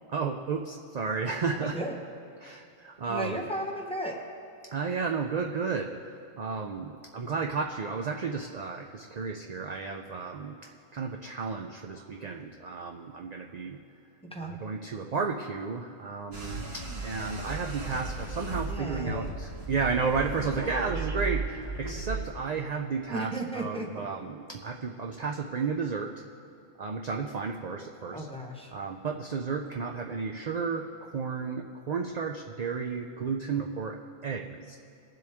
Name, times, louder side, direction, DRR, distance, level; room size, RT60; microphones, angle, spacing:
voice 1, 0.1-1.7 2.4-3.4 4.7-6.0 6.4-10.6 10.9-13.8 14.4-26.1 26.8-28.3 28.7-34.0 34.2-34.8, right 5 dB, 50° right, 2 dB, 0.5 m, -33 dB
voice 2, 1.6-2.0 3.1-4.2 14.2-14.6 18.6-19.3 23.1-24.1 28.1-28.7, right 1 dB, 5° left, 1 dB, 1.0 m, -35 dB
sound 1, 16.3-22.2, right 3 dB, 30° right, 1.2 m, -35 dB
20.5 x 7.7 x 3.5 m, 2.6 s
omnidirectional pair, 1.3 m